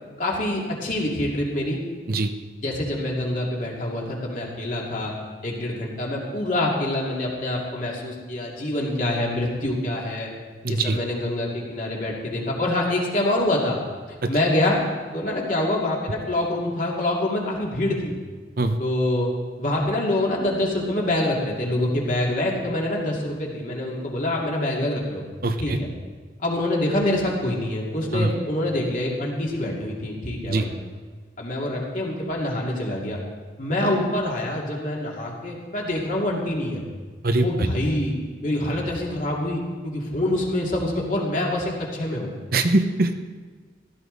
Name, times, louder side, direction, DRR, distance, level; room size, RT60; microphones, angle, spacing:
voice 1, 0.2-1.8 2.6-5.1 5.4-10.3 10.7-13.8 14.3-14.8 15.1-18.1 18.8-19.3 19.6-25.2 25.6-25.9 26.4-30.7 31.4-33.2 33.6-36.8 37.4-38.1 38.4-42.3, left 1 dB, 45° left, -2 dB, 2.6 m, -25 dB
voice 2, 10.6-11.0 14.2-14.3 18.6-18.8 25.4-25.8 28.1-28.3 30.5-30.6 37.2-37.7 42.5-43.1, right 2 dB, 55° right, 8 dB, 0.9 m, -22 dB
15.5 x 13.0 x 4.0 m, 1.5 s
head